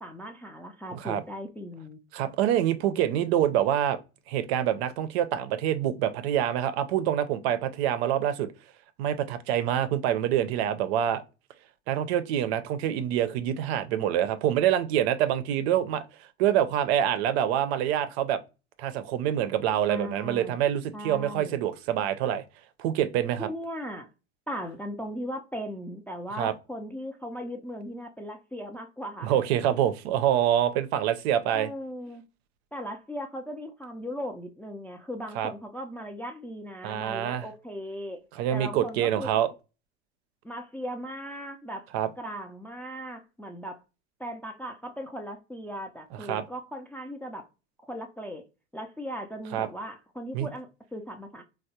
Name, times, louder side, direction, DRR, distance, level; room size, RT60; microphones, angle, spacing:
voice 1, 0.0-2.0 19.9-20.6 20.9-21.7 23.4-24.1 24.5-29.4 31.5-32.2 32.7-38.2 38.5-39.3 40.4-41.9 42.2-43.8 44.2-47.5 47.8-48.4 48.7-51.4, equal, 5° left, 0.3 m, -38 dB
voice 2, 0.9-1.2 2.1-4.0 4.3-8.5 9.0-11.2 11.9-16.0 16.4-18.4 18.8-22.4 22.8-23.5 26.4-26.5 29.2-31.7 35.4-35.5 36.8-37.4 38.3-39.5 41.9-42.1 46.3-46.4 49.5-49.7 50.3-50.5, right 10 dB, 70° right, 0.5 m, -26 dB
3.4 x 2.1 x 2.7 m
hypercardioid pair, 80°, 33 cm